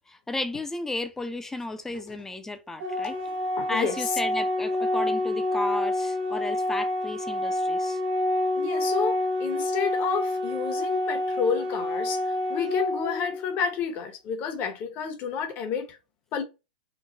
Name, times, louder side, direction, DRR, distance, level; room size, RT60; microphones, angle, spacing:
voice 1, 0.1-3.1 3.7-8.0, left 2 dB, 10° left, 0.4 m, -34 dB
Organ, 2.8-13.8, left 1 dB, 60° right, 1.0 m, -28 dB
voice 2, 3.6-4.2 8.6-16.0 16.3-16.4, left 6 dB, 40° left, 0.8 m, -30 dB
3.1 x 2.1 x 2.6 m
hypercardioid pair, 120°, 5 cm